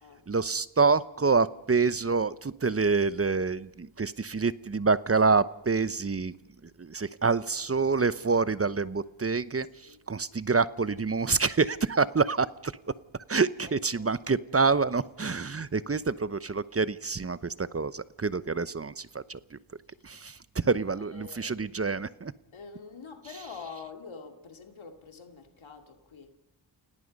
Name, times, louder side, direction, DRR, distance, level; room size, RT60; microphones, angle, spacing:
voice 1, 0.3-6.3 6.6-12.7 13.3-19.6 20.0-22.3 23.3-23.6, right 4 dB, 30° right, 0.9 m, -27 dB
voice 2, 13.7-14.1 20.7-21.5 22.5-26.3, left 5 dB, 75° left, 2.6 m, -46 dB
29.0 x 17.5 x 5.4 m
cardioid pair, 45°, 47 cm